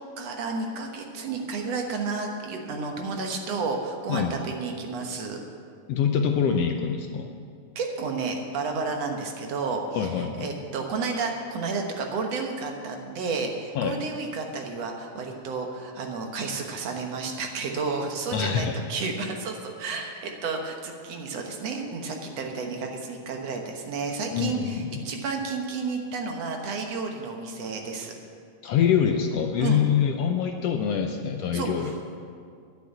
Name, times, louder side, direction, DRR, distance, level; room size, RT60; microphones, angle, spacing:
voice 1, 0.2-5.4 7.8-28.1 29.6-29.8 31.5-32.0, right 4 dB, 65° right, 2 dB, 2.2 m, -31 dB
voice 2, 5.9-7.3 9.9-10.5 13.7-14.0 18.3-18.7 24.3-24.9 28.6-31.9, left 8 dB, 75° left, 4 dB, 1.5 m, -25 dB
10.5 x 8.1 x 9.3 m, 2.2 s
omnidirectional pair, 3.3 m